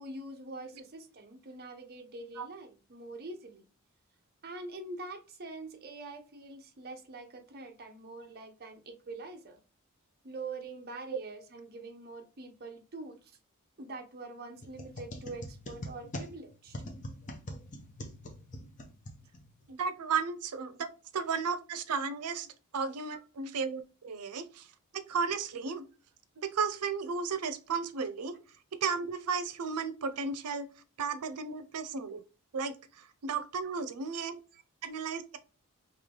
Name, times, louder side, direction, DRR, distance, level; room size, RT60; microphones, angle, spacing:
voice 1, 0.0-3.7 4.4-9.6 10.2-13.4 13.8-16.8 23.1-23.2 28.3-28.4 33.6-33.7 34.5-34.6, right 2 dB, 45° right, 4 dB, 0.7 m, -44 dB
sound 1, 14.6-19.7, left 1 dB, 35° left, 0.7 m, -43 dB
voice 2, 19.7-22.5 22.7-24.7 24.9-25.8 26.4-28.3 28.7-30.7 31.0-32.2 32.5-34.4 34.8-35.4, right 5 dB, 85° right, 10 dB, 0.5 m, -34 dB
3.2 x 2.9 x 3.8 m, 0.34 s
head